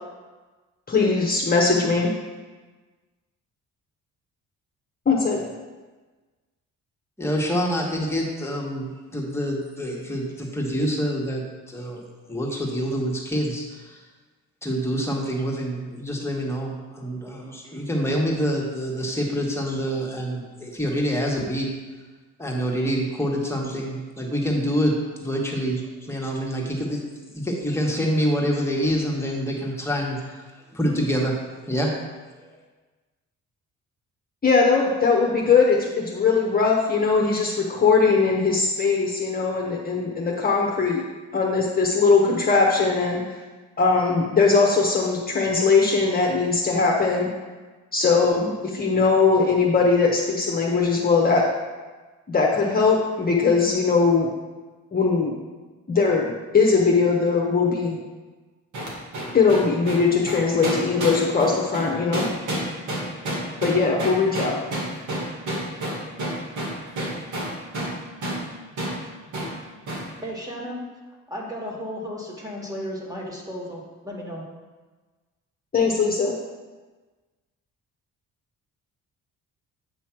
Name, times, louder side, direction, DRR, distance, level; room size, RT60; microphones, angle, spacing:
voice 1, 0.9-2.1 5.1-5.4 34.4-41.0 41.3-43.2 43.8-47.3 47.9-51.4 52.3-54.3 54.9-55.3 55.9-58.0 59.3-62.3 63.6-64.6 75.7-76.3, left 4 dB, 30° left, -2 dB, 1.0 m, -20 dB
voice 2, 7.2-11.4 11.7-12.0 12.3-14.0 14.6-21.7 22.4-24.9 25.2-27.0 27.3-30.4 30.7-31.3 31.7-31.9 32.4-32.5, equal, 10° left, -2 dB, 1.5 m, -26 dB
sound 1, 58.7-68.0 68.2-68.4 68.8-69.0 69.3-69.5 69.9-70.1, right 1 dB, 80° right, 2.3 m, -29 dB
voice 3, 70.2-70.9 71.3-74.5, equal, 10° right, -2 dB, 1.8 m, -34 dB
8.5 x 3.1 x 6.0 m, 1.3 s
cardioid pair, 90°, 30 cm